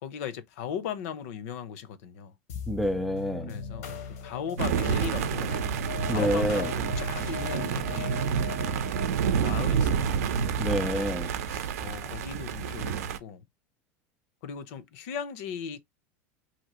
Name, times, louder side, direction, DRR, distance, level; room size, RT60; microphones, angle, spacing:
voice 1, 0.0-2.3 3.5-5.6 6.1-8.3 9.4-10.2 11.5-13.4 14.4-15.8, left 8 dB, 70° left, 0.6 m, -37 dB
sound 1, 2.5-11.2, left 7 dB, 90° left, 0.9 m, -40 dB
voice 2, 2.7-3.6 6.1-6.7 10.6-11.4, equal, ahead, 0.4 m, -28 dB
sound 2, 4.6-13.2, right 7 dB, 90° right, 0.6 m, -29 dB
2.9 x 2.6 x 2.9 m
supercardioid pair, 135°, 8 cm